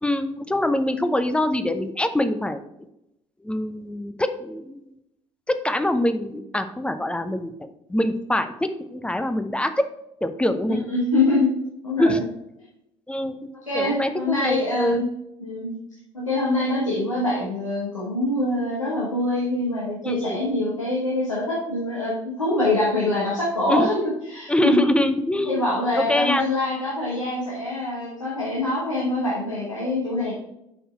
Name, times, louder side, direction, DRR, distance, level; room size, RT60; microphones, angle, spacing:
voice 1, 0.0-2.6 3.4-4.8 5.5-9.8 10.2-10.8 12.0-12.2 13.1-13.4 13.7-15.0 20.0-20.4 23.7-23.9 24.5-25.7 25.9-26.4, left 1 dB, 5° left, 9 dB, 0.6 m, -24 dB
voice 2, 10.7-11.5 11.8-12.2 13.7-15.1 15.4-15.7 16.1-24.8 25.4-30.3, left 2 dB, 85° left, -6 dB, 1.2 m, -24 dB
5.7 x 5.5 x 4.3 m, 0.83 s
figure-of-eight pair, 55°, 16 cm